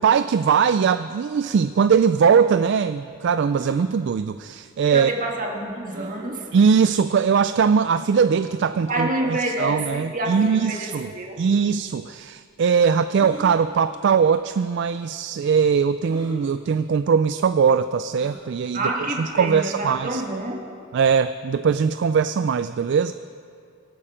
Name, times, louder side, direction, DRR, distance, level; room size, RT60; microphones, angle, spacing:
voice 1, 0.0-5.1 6.5-11.1 11.4-18.8 19.2-20.2 20.9-23.1, right 6 dB, 60° right, 12 dB, 0.3 m, -20 dB
sound 1, 3.5-3.8 5.9-6.2 7.0-7.1 7.9-8.2 10.2-10.5 11.6-11.7 13.1-13.5 14.4-14.5 14.8-14.9 16.1-16.4 18.1-18.4, equal, 20° right, 4.3 m, -40 dB
voice 2, 4.9-6.5 8.9-11.4 18.7-20.6, right 1 dB, 40° right, 0 dB, 1.8 m, -28 dB
24.5 x 8.8 x 5.0 m, 2.4 s
head